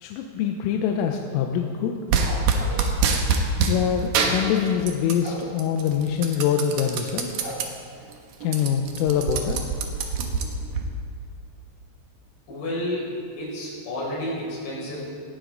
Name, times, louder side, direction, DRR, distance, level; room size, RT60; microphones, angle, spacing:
voice 1, 0.0-1.9 3.7-7.3 8.4-9.6, left 8 dB, 85° left, 3 dB, 3.3 m, -24 dB
sound 1, 2.1-3.8 4.1-5.3 5.6-7.7 8.1-8.2 8.4-10.8, right 5 dB, 90° right, 1.9 m, -24 dB
sound 2, 2.2-2.9 5.2-5.5 7.4-7.6, right 1 dB, 35° right, 2.0 m, -36 dB
voice 2, 12.5-13.1 13.4-15.1, left 1 dB, 60° left, -5 dB, 6.9 m, -30 dB
19.0 x 15.0 x 3.9 m, 2.3 s
omnidirectional pair, 5.9 m